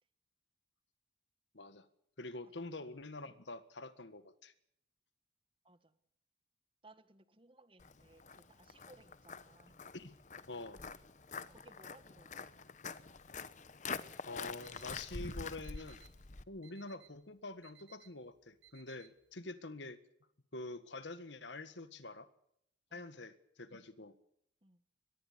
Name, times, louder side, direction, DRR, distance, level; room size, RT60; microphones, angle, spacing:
voice 1, 1.5-1.9 2.2-4.5 9.9-10.1 10.5-10.8 14.3-16.0 16.5-20.0 20.5-22.3 22.9-24.2, left 2 dB, 75° left, 12 dB, 1.7 m, -46 dB
voice 2, 5.6-6.0 6.8-9.8 11.5-12.5 22.9-23.1 23.9-24.1 24.6-24.8, right 2 dB, 30° right, 12 dB, 1.5 m, -62 dB
Walk footsteps, 7.8-16.4, left 5 dB, 40° left, 0.9 m, -46 dB
Alarm, 14.6-19.4, right 12 dB, 85° right, 1.5 m, -65 dB
23.5 x 21.0 x 6.9 m, 0.74 s
head